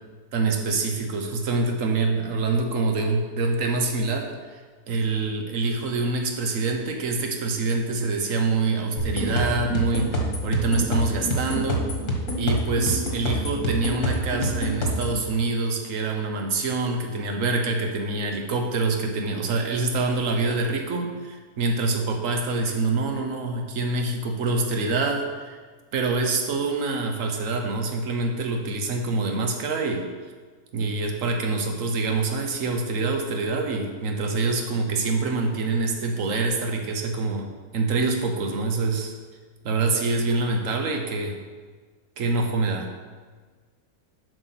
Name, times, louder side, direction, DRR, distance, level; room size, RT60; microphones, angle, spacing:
voice 1, 0.3-4.6 4.9-11.8 12.4-25.6 25.9-30.3 30.7-37.5 37.7-39.1 39.6-41.4 42.2-42.9, right 3 dB, 60° right, 3 dB, 1.3 m, -25 dB
sound 1, 9.0-15.2, equal, 55° left, 1.7 m, -27 dB
7.6 x 5.5 x 5.9 m, 1.5 s
omnidirectional pair, 1.6 m